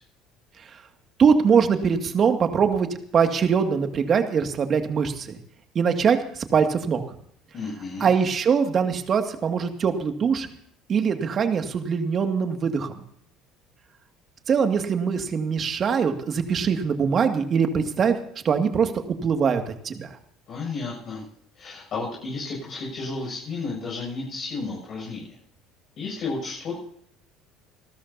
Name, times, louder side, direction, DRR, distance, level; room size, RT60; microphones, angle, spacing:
voice 1, 1.2-2.9 3.1-5.4 5.7-7.0 8.0-10.5 10.9-12.9 14.5-18.2 18.4-20.1, right 6 dB, 45° right, 6 dB, 2.3 m, -22 dB
voice 2, 7.5-8.1 20.5-21.2 21.5-25.4 26.0-26.8, left 3 dB, 55° left, -4 dB, 7.3 m, -32 dB
28.5 x 13.0 x 2.9 m, 0.65 s
hypercardioid pair, 75°, 0 cm